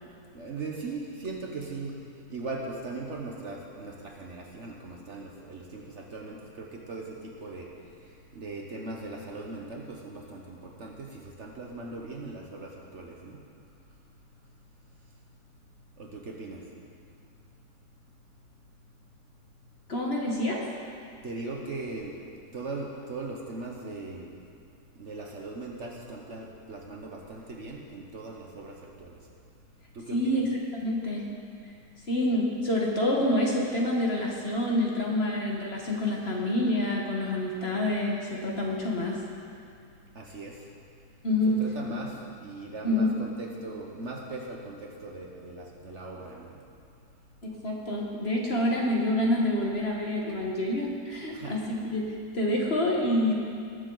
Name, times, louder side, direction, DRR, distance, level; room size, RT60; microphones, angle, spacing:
voice 1, 0.3-2.0 2.3-7.7 8.3-13.4 16.0-16.6 21.2-22.1 22.5-24.3 25.0-29.1 29.9-30.4 40.1-40.6 41.5-46.5 51.3-51.6, right 3 dB, 50° right, 0 dB, 1.2 m, -39 dB
voice 2, 19.9-20.6 30.1-31.2 31.6-31.7 32.1-39.2 41.2-41.6 42.8-43.1 47.4-53.3, left 1 dB, 40° left, -2 dB, 1.5 m, -27 dB
20.0 x 7.3 x 3.9 m, 2.4 s
omnidirectional pair, 1.7 m